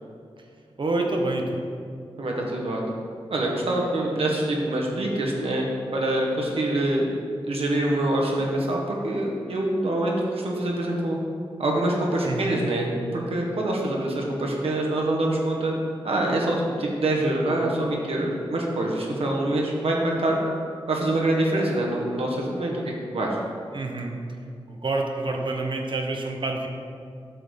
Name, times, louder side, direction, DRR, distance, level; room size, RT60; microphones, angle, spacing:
voice 1, 0.8-1.6 12.2-12.6 23.7-24.4 24.7-26.7, right 2 dB, 55° right, 2 dB, 1.2 m, -28 dB
voice 2, 2.2-2.8 3.3-7.1 7.4-11.2 11.6-15.7 16.0-20.4 20.9-23.4, right 1 dB, 75° right, -2 dB, 1.6 m, -25 dB
8.9 x 4.1 x 6.8 m, 2.3 s
cardioid pair, 65°, 10 cm